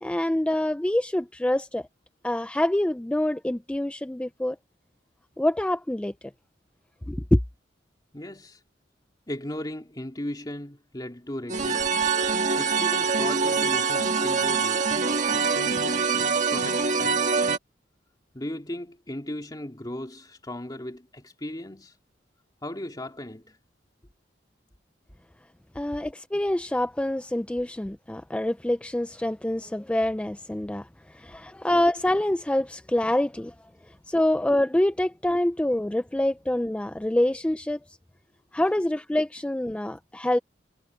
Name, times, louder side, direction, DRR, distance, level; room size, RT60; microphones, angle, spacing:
voice 1, 0.0-1.9 2.2-4.6 5.4-6.3 7.1-7.4 25.8-33.5 33.9-38.0 38.5-40.4, left 1 dB, 5° left, 0.3 m, -26 dB
voice 2, 8.1-8.6 9.3-11.9 12.6-14.9 15.5-16.2 16.5-17.3 18.3-22.0 22.6-23.6 31.3-31.4, left 1 dB, 20° left, 2.6 m, -37 dB
sound 1, 11.5-17.6, right 5 dB, 45° right, 1.7 m, -24 dB
head